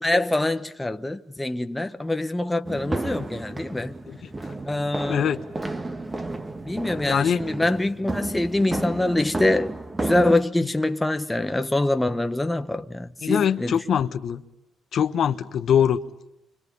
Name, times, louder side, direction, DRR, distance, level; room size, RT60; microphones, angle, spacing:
voice 1, 0.0-3.9 4.7-5.2 6.6-9.7 10.0-13.8, left 2 dB, 10° left, 1.1 m, -24 dB
sound 1, 2.7-10.4, right 2 dB, 20° right, 1.6 m, -32 dB
voice 2, 7.1-7.4 13.2-14.4 14.9-16.0, left 8 dB, 65° left, 1.2 m, -23 dB
29.0 x 25.0 x 5.5 m
cardioid pair, 90°, 0 cm